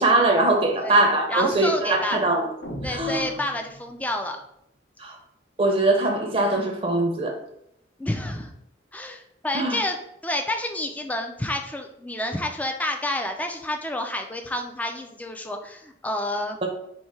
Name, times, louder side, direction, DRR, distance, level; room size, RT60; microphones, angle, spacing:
voice 1, 0.0-2.5 2.9-3.2 5.0-5.2 5.6-7.4 9.5-9.8 16.6-16.7, right 2 dB, 30° right, 3 dB, 0.6 m, -21 dB
voice 2, 1.3-2.2 2.8-4.4 8.0-8.5 8.9-10.0 10.2-16.6, left 1 dB, 10° left, 4 dB, 0.4 m, -29 dB
sound 1, 2.6-4.2, equal, 80° left, 0.9 m, -38 dB
4.6 x 2.7 x 4.3 m, 0.74 s
head